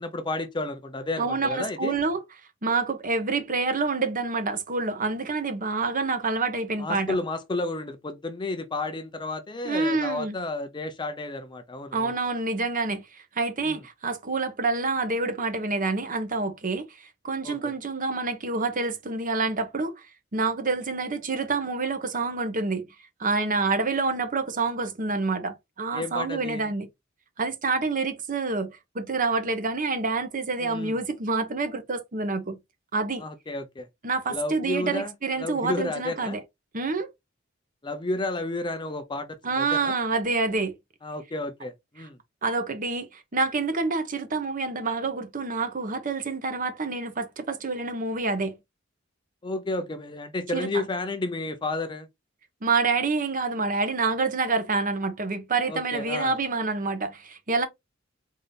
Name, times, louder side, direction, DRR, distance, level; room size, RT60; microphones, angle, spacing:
voice 1, 0.0-2.0 6.8-12.2 13.6-13.8 17.4-17.7 25.9-26.7 30.6-31.0 33.2-33.9 34.3-36.4 37.8-40.0 41.0-42.2 49.4-52.1 55.7-56.4, left 2 dB, 25° left, 0.5 m, -32 dB
voice 2, 1.2-2.2 2.6-7.2 9.6-10.4 11.9-13.0 13.3-16.8 17.2-20.0 20.3-22.9 23.2-26.9 27.4-32.6 32.9-33.2 34.0-36.4 36.7-37.1 39.4-40.7 42.4-48.6 50.5-50.8 52.6-57.7, right 3 dB, 45° right, 0.8 m, -27 dB
3.9 x 2.7 x 3.3 m
head